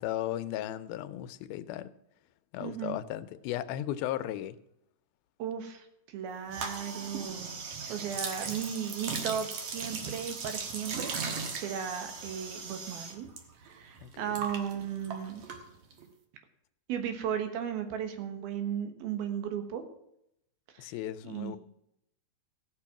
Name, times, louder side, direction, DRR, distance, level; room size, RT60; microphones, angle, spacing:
voice 1, 0.0-1.9 2.5-4.6 14.0-14.4 20.8-21.6, left 13 dB, 85° left, 2.5 m, -36 dB
voice 2, 2.6-3.0 5.4-7.5 7.9-13.3 13.6-15.4 16.9-19.8 20.7-20.9 21.2-21.6, right 8 dB, 90° right, 3.3 m, -36 dB
sound 1, 6.5-13.4 13.7-16.1, right 5 dB, 55° right, 1.9 m, -38 dB
16.0 x 6.9 x 5.9 m
omnidirectional pair, 4.2 m